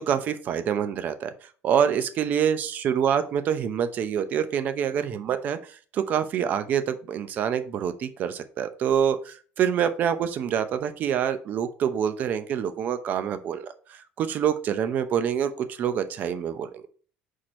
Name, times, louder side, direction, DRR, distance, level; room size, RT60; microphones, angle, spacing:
voice 1, 0.0-1.3 1.6-16.8, right 8 dB, 45° right, 10 dB, 0.7 m, -26 dB
4.7 x 4.4 x 5.6 m, 0.42 s
cardioid pair, 150°, 4 cm